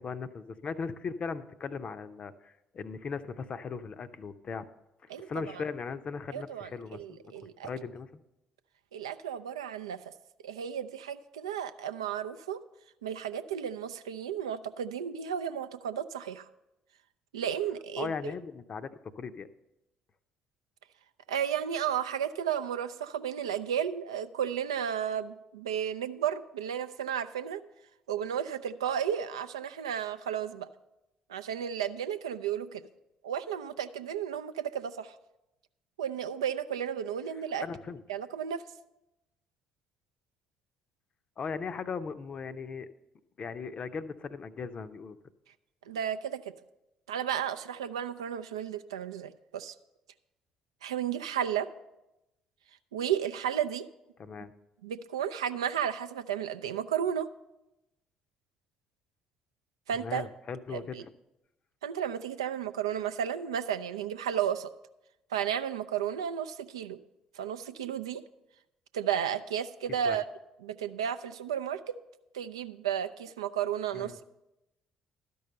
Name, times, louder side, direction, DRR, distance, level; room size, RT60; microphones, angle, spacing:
voice 1, 0.0-4.7 5.2-7.2 7.6-8.2 18.0-19.5 37.6-38.0 41.4-42.9 43.4-45.2 54.2-54.5 60.0-61.1 70.0-70.2 73.9-74.2, left 5 dB, 40° left, 12 dB, 0.5 m, -38 dB
voice 2, 6.3-7.7 8.9-10.1 10.4-12.6 13.0-16.5 17.3-18.3 21.3-27.6 28.1-30.7 31.3-32.8 33.2-35.1 36.0-37.7 38.1-38.6 45.9-46.4 47.1-49.7 50.8-51.7 52.9-53.9 54.8-57.3 59.9-60.2 60.7-60.8 61.8-64.7 65.3-67.0 67.4-68.2 68.9-70.2 70.6-72.0 72.3-74.2, right 9 dB, 80° right, 11 dB, 0.3 m, -33 dB
12.0 x 5.4 x 6.6 m, 0.93 s
figure-of-eight pair, 50°, 3 cm